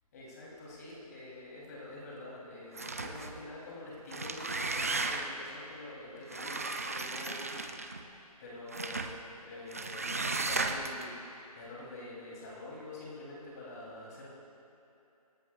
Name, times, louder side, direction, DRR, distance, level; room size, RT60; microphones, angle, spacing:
voice 1, 0.1-7.8 8.1-14.3, left 2 dB, 25° left, -5 dB, 3.2 m, -46 dB
sound 1, 2.7-3.4 4.0-5.5 6.3-8.0 8.7-9.2 9.7-11.0, right 3 dB, 25° right, 0.4 m, -35 dB
26.5 x 11.0 x 2.4 m, 2.9 s
figure-of-eight pair, 165°, 20 cm